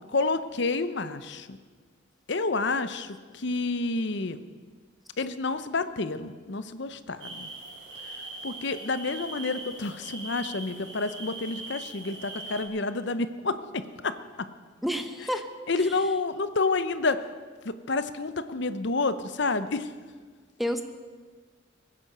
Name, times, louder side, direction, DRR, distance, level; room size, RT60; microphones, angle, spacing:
voice 1, 0.1-1.6 2.3-4.4 5.2-7.5 8.4-14.1 15.7-17.2 17.6-19.9, left 3 dB, 60° left, 12 dB, 0.8 m, -29 dB
sound 1, 7.2-12.7, right 3 dB, 60° right, 3.3 m, -41 dB
voice 2, 14.8-15.5 15.8-16.0 20.6-20.8, equal, ahead, 7 dB, 0.9 m, -30 dB
21.5 x 9.8 x 6.7 m, 1.5 s
head